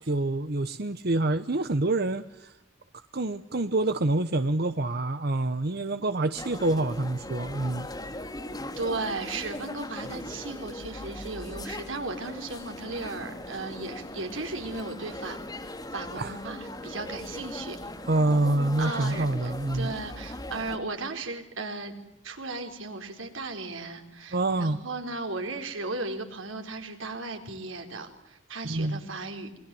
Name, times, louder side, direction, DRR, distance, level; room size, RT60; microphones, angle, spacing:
voice 1, 0.1-2.5 3.1-7.9 16.1-16.4 18.0-19.9 24.3-24.8 28.6-29.0, right 2 dB, 55° right, 11 dB, 1.0 m, -27 dB
sound 1, 6.4-20.8, left 1 dB, 20° left, 2.5 m, -39 dB
voice 2, 8.8-17.8 18.8-22.0 22.2-29.5, right 3 dB, 90° right, 5 dB, 4.3 m, -36 dB
27.0 x 23.0 x 7.8 m, 0.91 s
head